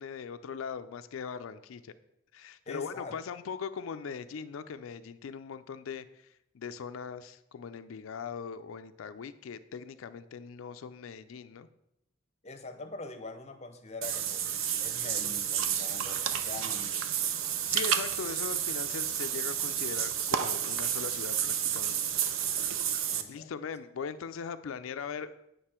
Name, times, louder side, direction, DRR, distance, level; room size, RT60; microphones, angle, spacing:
voice 1, 0.0-1.9 2.3-6.3 6.5-11.7 17.7-22.2 23.3-25.4, left 6 dB, 85° left, 11 dB, 0.4 m, -40 dB
voice 2, 2.7-3.2 12.4-14.5 14.8-17.0 23.1-23.5, left 3 dB, 30° left, 8 dB, 0.7 m, -44 dB
Water / Bathtub (filling or washing), 14.0-23.2, right 9 dB, 80° right, 0.6 m, -31 dB
8.5 x 5.1 x 4.4 m, 0.83 s
head